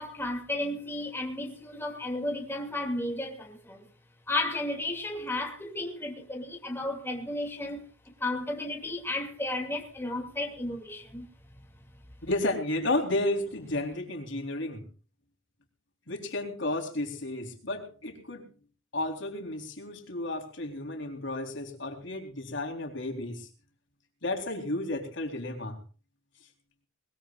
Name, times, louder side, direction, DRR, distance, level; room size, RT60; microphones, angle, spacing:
voice 1, 0.0-3.9 4.3-7.8 8.2-11.3, left 2 dB, 10° left, 2.6 m, -33 dB
voice 2, 12.3-14.8 16.1-18.5 18.9-23.5 24.2-25.8, left 2 dB, 60° left, 3.8 m, -32 dB
21.5 x 21.0 x 2.5 m
head